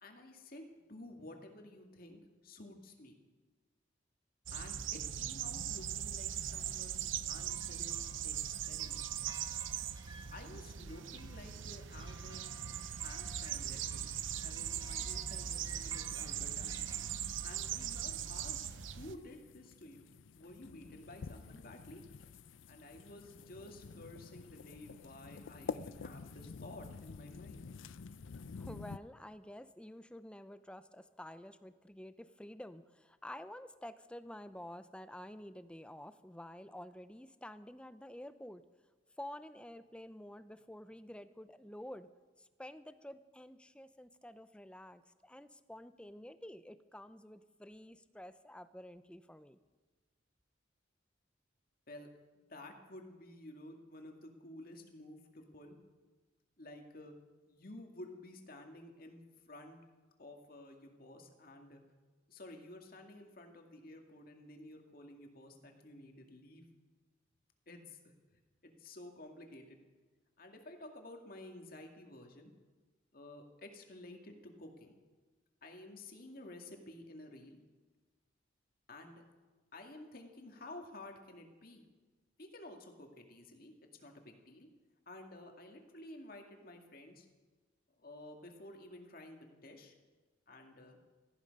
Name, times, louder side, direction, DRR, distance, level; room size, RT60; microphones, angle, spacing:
voice 1, 0.0-3.2 4.5-7.0 7.3-9.0 10.3-12.4 13.0-17.0 17.4-20.1 20.4-22.0 22.7-27.6 51.9-52.1 52.4-55.8 56.6-57.2 57.5-59.8 60.2-61.8 62.3-66.7 67.7-68.0 68.6-69.8 70.4-72.5 73.1-74.9 75.6-77.6 78.9-79.2 79.7-81.8 82.4-83.7 84.0-84.7 85.1-87.3 88.0-89.9 90.5-91.0, left 1 dB, 50° left, 3 dB, 2.2 m, -52 dB
sound 1, 4.5-19.1, right 9 dB, 85° right, 0.7 m, -40 dB
sound 2, 7.5-18.6, right 3 dB, 20° right, 1.5 m, -58 dB
sound 3, 14.3-29.0, left 5 dB, 90° left, 0.5 m, -50 dB
voice 2, 28.6-38.6 39.2-42.1 42.4-49.6, left 1 dB, 5° left, 12 dB, 0.6 m, -50 dB
18.0 x 14.0 x 5.4 m, 1.3 s
head